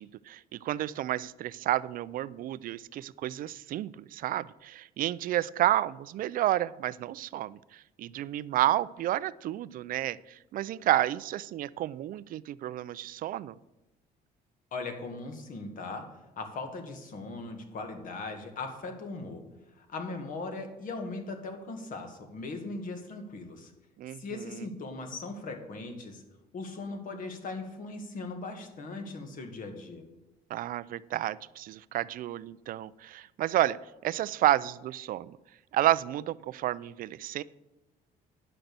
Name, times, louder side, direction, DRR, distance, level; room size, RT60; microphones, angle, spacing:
voice 1, 0.0-13.6 24.0-24.7 30.5-35.3 35.7-37.4, right 13 dB, 55° right, 18 dB, 0.4 m, -31 dB
voice 2, 14.7-19.5 19.8-23.7 24.1-26.2 26.5-30.0, left 3 dB, 55° left, 5 dB, 1.8 m, -39 dB
9.9 x 6.0 x 6.7 m, 1.0 s
cardioid pair, 110°, 17 cm